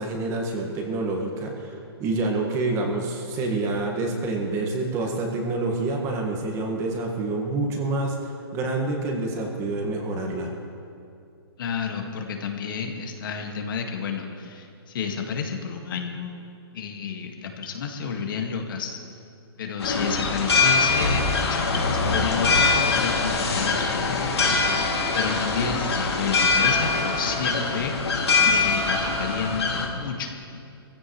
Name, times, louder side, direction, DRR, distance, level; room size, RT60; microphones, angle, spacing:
voice 1, 0.0-10.5, right 2 dB, 20° right, 1 dB, 1.8 m, -27 dB
voice 2, 11.6-16.4 16.7-19.0 19.6-28.0 28.5-30.6, left 6 dB, 55° left, 3 dB, 2.0 m, -31 dB
sound 1, 19.8-29.9, left 4 dB, 85° left, 2.8 m, -23 dB
21.5 x 15.5 x 3.3 m, 2.6 s
hypercardioid pair, 155°, 13 cm